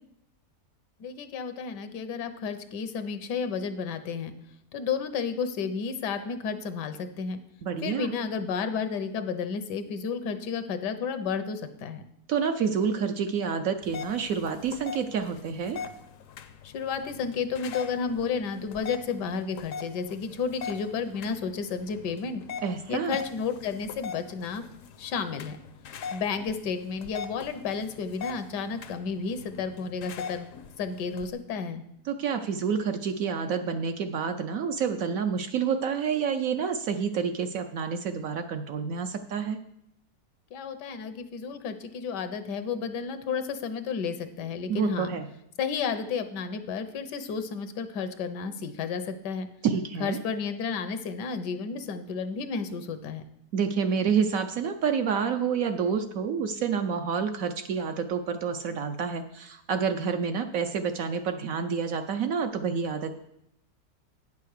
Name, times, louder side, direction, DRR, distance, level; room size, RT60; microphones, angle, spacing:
voice 1, 1.0-4.3 4.7-7.4 7.8-12.0 16.6-22.4 22.9-24.6 25.0-25.6 26.1-30.5 30.8-31.8 40.5-45.1 45.6-49.5 50.0-53.2, left 5 dB, 80° left, 10 dB, 1.4 m, -32 dB
voice 2, 7.6-8.1 12.3-15.8 22.6-23.2 32.1-39.6 44.7-45.3 49.6-50.2 53.5-63.1, right 6 dB, 65° right, 7 dB, 0.9 m, -28 dB
sound 1, 13.8-31.3, left 6 dB, 65° left, 0.9 m, -42 dB
9.0 x 5.7 x 6.4 m, 0.76 s
omnidirectional pair, 1.8 m